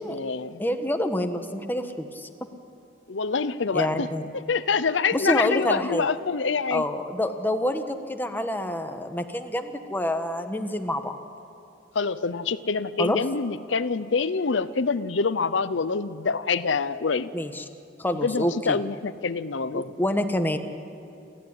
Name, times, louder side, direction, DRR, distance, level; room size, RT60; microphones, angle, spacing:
voice 1, 0.1-0.6 3.1-4.1 4.3-6.8 11.9-17.3 18.1-19.9, left 4 dB, 90° left, 14 dB, 0.7 m, -26 dB
voice 2, 0.6-2.3 3.7-4.2 5.1-6.1 6.7-11.1 13.0-13.2 17.3-17.6 18.0-18.8 19.7-20.6, left 1 dB, 10° left, 6 dB, 1.4 m, -27 dB
28.0 x 14.5 x 9.8 m, 2.6 s
head